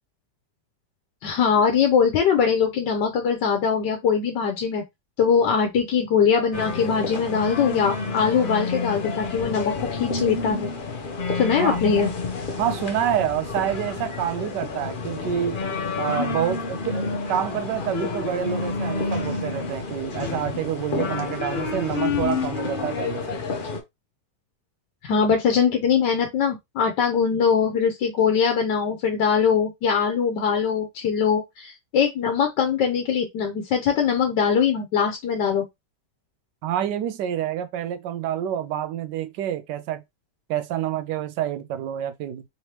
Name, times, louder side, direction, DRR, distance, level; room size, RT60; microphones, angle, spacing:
voice 1, 1.2-4.8 5.2-10.7 11.3-12.1 25.0-35.7, left 6 dB, 85° left, 1.4 m, -22 dB
sound 1, 6.5-23.8, left 4 dB, 40° left, 0.8 m, -29 dB
voice 2, 12.6-15.6 16.0-23.4 36.6-40.0 40.5-42.4, right 10 dB, 85° right, 1.3 m, -27 dB
4.1 x 3.2 x 2.9 m
omnidirectional pair, 1.8 m